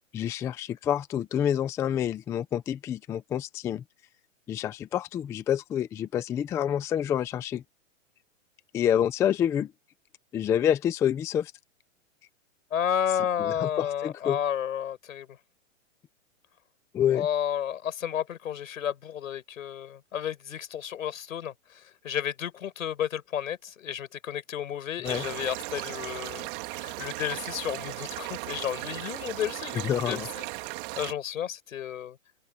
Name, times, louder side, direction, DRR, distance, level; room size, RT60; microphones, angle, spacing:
voice 1, 0.1-3.8 4.5-7.6 8.7-9.7 10.3-11.5 13.4-14.4 16.9-17.3 25.0-25.2 29.8-30.3, left 10 dB, 10° left, 0.4 m, -27 dB
voice 2, 12.7-15.3 17.1-30.4 31.0-32.2, left 9 dB, 80° left, 5.0 m, -32 dB
sound 1, 25.0-31.1, right 25 dB, 40° right, 2.9 m, -37 dB
hypercardioid pair, 145°, 39 cm